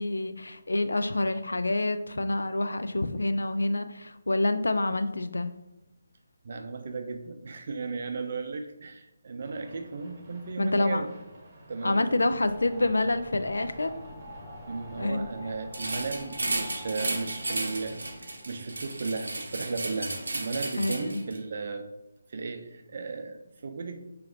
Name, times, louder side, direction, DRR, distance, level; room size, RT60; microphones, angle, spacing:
voice 1, 0.0-5.5 10.6-11.0 11.8-13.9 15.0-15.3 20.8-21.2, left 2 dB, 85° left, 10 dB, 0.3 m, -27 dB
voice 2, 6.4-11.1 11.7-12.1 14.7-21.8 22.3-24.0, right 4 dB, 50° right, 6 dB, 0.5 m, -35 dB
sound 1, 9.4-16.0, equal, 35° right, 0.9 m, -50 dB
sound 2, 12.4-18.8, equal, 5° left, 0.5 m, -48 dB
sound 3, 15.7-21.4, right 2 dB, 80° right, 0.8 m, -34 dB
3.0 x 2.8 x 3.7 m, 0.91 s
figure-of-eight pair, 155°, 0 cm